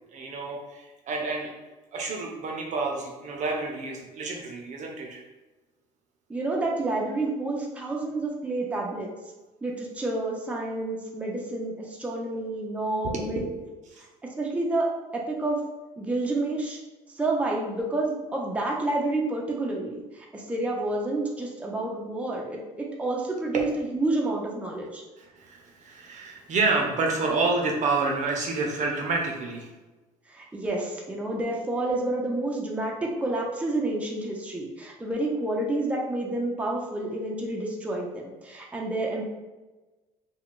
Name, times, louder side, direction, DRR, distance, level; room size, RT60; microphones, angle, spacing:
voice 1, 0.1-1.5 1.9-5.2 13.9-14.0 23.5-23.6 25.2-29.7, right 3 dB, 50° right, 1 dB, 0.6 m, -29 dB
voice 2, 6.3-9.1 9.6-13.4 14.4-14.9 15.1-15.6 16.0-16.8 17.1-25.0 30.3-39.2, right 2 dB, 10° right, -2 dB, 0.6 m, -29 dB
2.3 x 2.3 x 3.7 m, 1.2 s
supercardioid pair, 90°, 16 cm